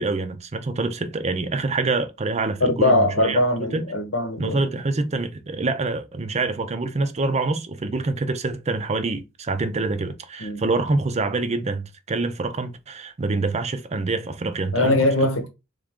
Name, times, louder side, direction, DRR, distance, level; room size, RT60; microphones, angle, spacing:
voice 1, 0.0-3.4 3.7-3.8 4.4-15.1, right 3 dB, 35° right, 0.5 m, -26 dB
voice 2, 2.6-4.7 10.4-10.6 14.7-15.5, left 1 dB, 70° left, 1.0 m, -21 dB
3.6 x 3.4 x 3.6 m
head